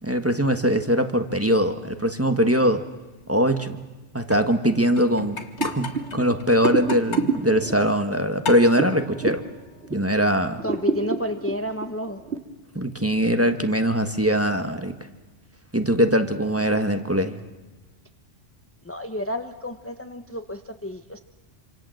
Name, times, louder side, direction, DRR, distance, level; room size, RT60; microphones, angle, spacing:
voice 1, 0.0-2.8 3.3-3.8 4.1-5.4 5.6-9.4 9.9-10.6 12.7-14.9 15.7-17.4, equal, 15° right, 7 dB, 1.4 m, -22 dB
sound 1, 4.2-8.1 8.4-9.5 10.8-11.0, left 5 dB, 85° left, 1.9 m, -36 dB
sound 2, 5.6-10.2 10.5-12.4, right 4 dB, 75° right, 2.3 m, -29 dB
voice 2, 10.6-12.2 18.8-21.2, equal, 15° left, 7 dB, 1.0 m, -30 dB
27.0 x 26.0 x 7.8 m, 1.2 s
omnidirectional pair, 1.1 m